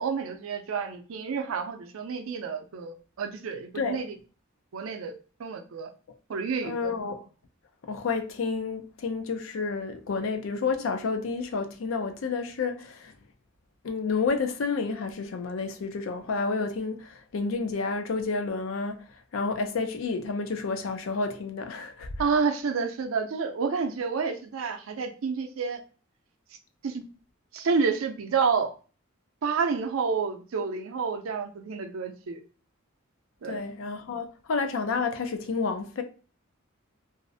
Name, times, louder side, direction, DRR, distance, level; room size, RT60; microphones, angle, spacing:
voice 1, 0.0-4.1 4.7-5.1 5.4-5.9 6.3-6.9 22.2-25.8 26.8-27.0 27.5-28.7 29.4-32.4 33.4-33.6, right 5 dB, 85° right, 0.5 m, -29 dB
voice 2, 6.6-7.2 7.8-13.1 13.8-19.1 19.3-22.1 33.4-36.0, left 4 dB, 75° left, 0.4 m, -30 dB
2.5 x 2.0 x 2.6 m
head